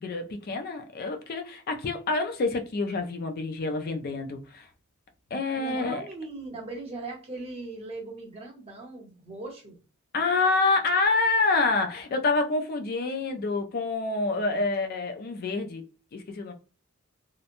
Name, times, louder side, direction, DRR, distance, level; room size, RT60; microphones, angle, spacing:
voice 1, 0.0-4.7 5.3-6.0 10.1-15.9 16.1-16.5, left 3 dB, 45° left, 0.4 m, -27 dB
voice 2, 5.6-9.8 14.5-14.6, right 3 dB, 30° right, 0.8 m, -39 dB
2.8 x 2.1 x 2.5 m
head